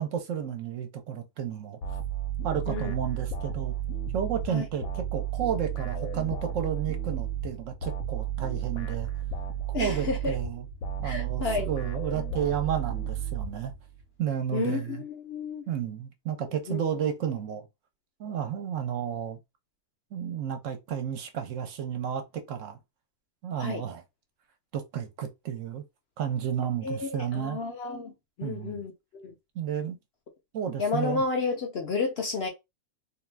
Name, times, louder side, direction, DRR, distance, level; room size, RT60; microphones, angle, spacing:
voice 1, 0.0-1.8 2.4-3.7 4.1-9.1 9.8-10.6 11.0-13.7 14.2-15.0 15.7-17.6 18.2-19.4 20.1-22.8 23.4-24.0 24.7-25.8 26.2-27.6 28.4-28.8 29.6-30.0 30.5-31.2, right 8 dB, 70° right, 0.9 m, -32 dB
sound 1, 1.8-14.0, right 8 dB, 90° left, 1.1 m, -33 dB
voice 2, 9.7-10.3 11.0-11.7 14.5-15.7 16.7-16.8 23.6-23.9 26.8-29.3 30.8-32.5, left 4 dB, 55° left, 0.8 m, -31 dB
2.6 x 2.3 x 3.2 m
omnidirectional pair, 1.5 m